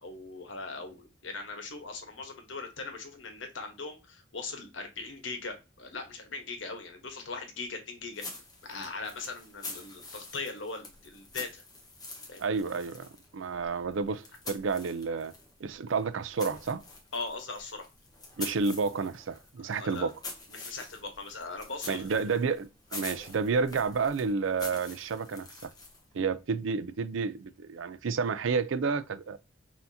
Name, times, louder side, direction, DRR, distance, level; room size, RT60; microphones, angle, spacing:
voice 1, 0.0-8.2 8.7-11.6 12.3-12.6 13.6-13.7 17.1-17.8 19.7-20.1 20.5-22.1, left 3 dB, 75° left, 1.2 m, -40 dB
sound 1, 8.1-15.5 15.9-26.1, left 3 dB, 20° left, 1.0 m, -46 dB
voice 2, 12.4-15.3 15.6-16.8 18.4-20.1 21.9-25.7 26.1-29.4, right 5 dB, 80° right, 0.5 m, -30 dB
5.7 x 2.7 x 2.7 m
head